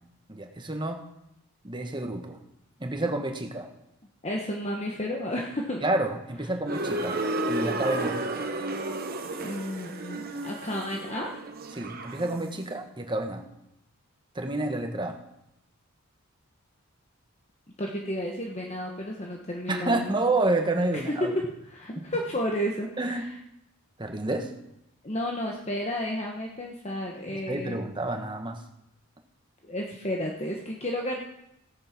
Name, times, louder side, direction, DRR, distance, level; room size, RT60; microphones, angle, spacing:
voice 1, 0.3-1.0 1.6-2.4 2.8-3.7 5.8-7.2 7.5-8.2 11.7-13.4 14.3-15.2 19.7-21.3 22.0-22.1 23.0-23.2 24.0-24.5 27.3-28.6, right 2 dB, 20° right, 4 dB, 1.4 m, -29 dB
voice 2, 4.2-5.8 9.4-11.3 17.8-20.2 20.9-23.3 25.0-27.8 29.6-31.2, equal, 30° left, 0 dB, 1.3 m, -32 dB
sound 1, 6.7-12.6, right 2 dB, 45° right, 1.1 m, -32 dB
16.0 x 8.9 x 6.0 m, 0.83 s
head